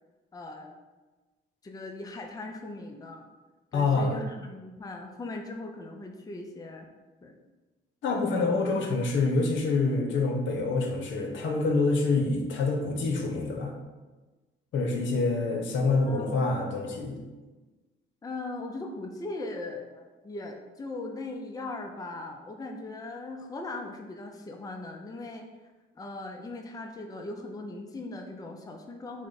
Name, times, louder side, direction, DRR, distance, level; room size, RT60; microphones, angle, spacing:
voice 1, 0.3-0.8 1.6-3.3 3.7-6.9 7.2-7.3 16.0-16.7 18.2-25.5 25.9-29.3, left 2 dB, 20° left, 3 dB, 0.5 m, -39 dB
voice 2, 3.7-4.2 8.0-13.7 14.7-17.2, left 3 dB, 70° left, 2 dB, 0.9 m, -26 dB
6.0 x 2.2 x 4.0 m, 1.2 s
cardioid pair, 90°, 20 cm